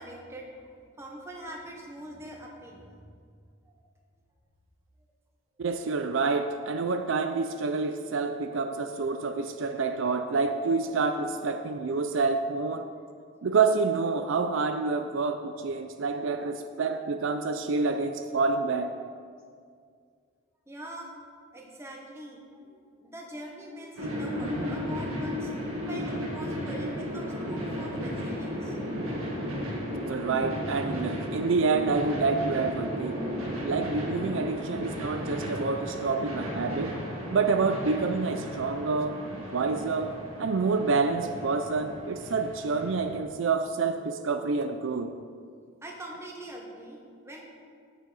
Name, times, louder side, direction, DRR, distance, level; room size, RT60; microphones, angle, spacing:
voice 1, 0.0-3.0 3.6-3.8 5.6-5.7 12.9-13.0 20.7-21.1 21.5-28.8 45.8-47.4, right 1 dB, 15° right, -1 dB, 1.2 m, -43 dB
voice 2, 5.6-12.9 13.4-18.9 30.0-33.2 33.6-36.9 37.3-39.2 39.5-45.1, right 4 dB, 65° right, 8 dB, 0.4 m, -28 dB
sound 1, 24.0-43.2, equal, 80° right, 1.6 m, -34 dB
14.5 x 6.4 x 4.0 m, 2.1 s
head